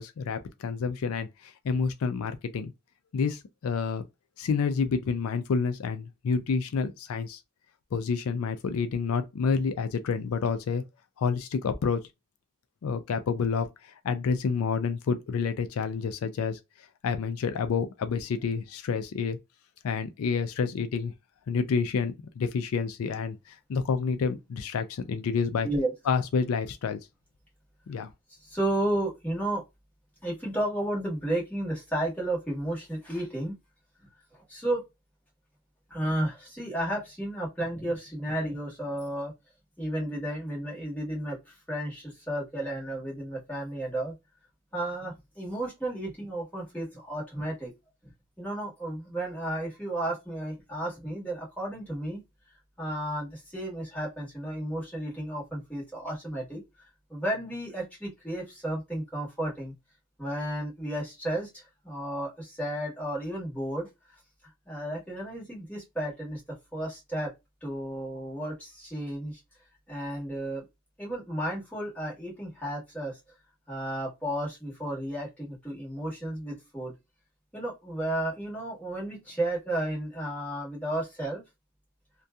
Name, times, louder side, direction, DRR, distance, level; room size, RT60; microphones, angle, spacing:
voice 1, 0.0-2.7 3.1-4.0 4.4-7.4 7.9-10.8 11.2-12.0 12.8-16.6 17.0-19.4 19.8-21.1 21.5-25.7 26.1-27.0 27.9-28.1, left 5 dB, 80° left, 0.4 m, -29 dB
voice 2, 28.4-29.6 30.2-33.6 34.5-34.8 35.9-39.3 39.8-44.1 44.7-47.7 48.0-48.1 48.4-52.2 52.8-59.7 60.2-63.9 64.7-66.4 66.7-67.3 67.6-69.4 69.9-70.7 71.0-73.2 73.7-76.9 77.5-81.4, right 1 dB, 5° left, 1.2 m, -33 dB
2.7 x 2.2 x 2.2 m
head